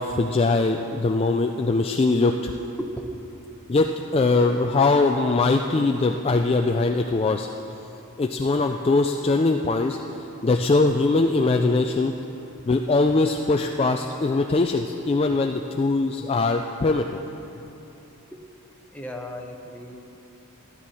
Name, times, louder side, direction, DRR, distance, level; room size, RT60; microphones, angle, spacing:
voice 1, 0.0-2.5 3.7-7.5 8.2-10.0 10.4-12.1 12.6-17.2, left 3 dB, 25° left, 3 dB, 0.3 m, -21 dB
voice 2, 18.9-20.0, equal, 5° left, 2 dB, 0.8 m, -35 dB
13.5 x 12.0 x 4.2 m, 3.0 s
head